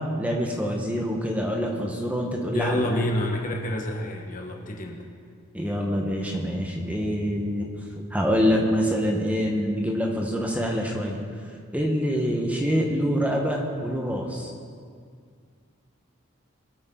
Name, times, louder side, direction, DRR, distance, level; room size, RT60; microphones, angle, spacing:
voice 1, 0.2-2.9 5.5-7.7 8.1-11.2 11.7-14.5, equal, 5° right, 0 dB, 1.3 m, -25 dB
voice 2, 2.5-5.0, left 1 dB, 40° left, 2 dB, 1.5 m, -28 dB
23.0 x 8.9 x 3.9 m, 2.1 s
head